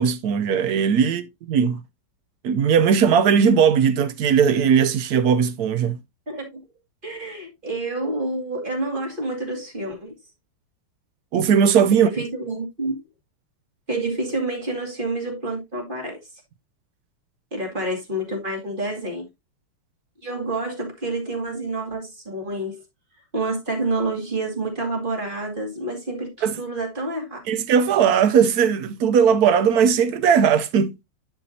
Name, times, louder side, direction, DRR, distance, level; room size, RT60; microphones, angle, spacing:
voice 1, 0.0-1.8 2.4-6.0 11.3-12.1 26.4-26.6 27.5-30.9, right 7 dB, 75° right, 0.8 m, -18 dB
voice 2, 6.3-6.6 7.0-10.1 12.0-13.0 13.9-16.2 17.5-19.3 20.2-22.8 23.3-27.4, right 2 dB, 25° right, 2.4 m, -28 dB
9.8 x 6.1 x 2.7 m
omnidirectional pair, 2.4 m